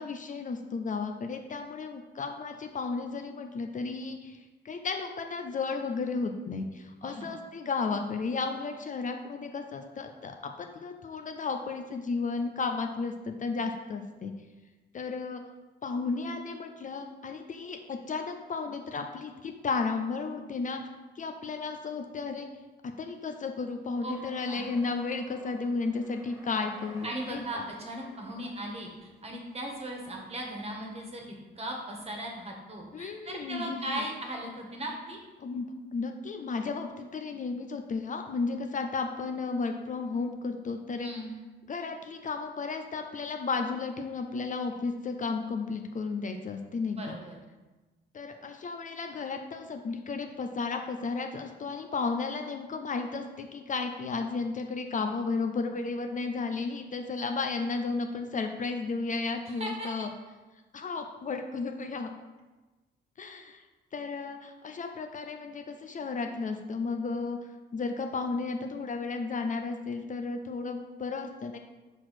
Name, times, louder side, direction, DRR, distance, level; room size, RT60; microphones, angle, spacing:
voice 1, 0.0-14.3 14.9-15.4 15.8-20.8 21.2-22.5 23.0-27.6 32.9-34.0 35.4-35.7 35.9-41.1 41.7-47.1 48.1-60.1 60.7-62.1 63.2-63.6 63.9-67.4 67.7-71.6, left 4 dB, 40° left, 5 dB, 0.6 m, -33 dB
voice 2, 7.0-7.3 24.0-24.1 24.5-24.7 27.0-31.2 31.5-35.2 41.0-41.3 46.9-47.4 59.4-59.9, right 1 dB, 30° right, 0 dB, 1.6 m, -38 dB
sound 1, 24.0-30.6, right 1 dB, 15° right, 1.7 m, -54 dB
4.8 x 4.4 x 5.9 m, 1.2 s
cardioid pair, 90°, 20 cm